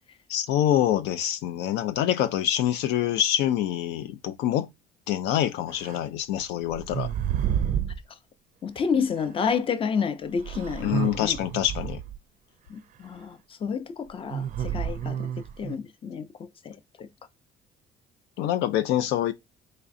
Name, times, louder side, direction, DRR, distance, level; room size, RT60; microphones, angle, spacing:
voice 1, 0.3-4.7 5.1-7.1 10.8-12.0 18.4-19.3, left 11 dB, 90° left, 0.4 m, -25 dB
sound 1, 5.8-6.0 6.7-8.0 9.2-9.3 10.4-12.2 14.3-15.8, right 9 dB, 50° right, 0.4 m, -30 dB
voice 2, 8.6-11.4 12.7-15.2 15.6-16.8, left 6 dB, 30° left, 0.5 m, -29 dB
3.7 x 3.2 x 2.5 m
cardioid pair, 110°, 17 cm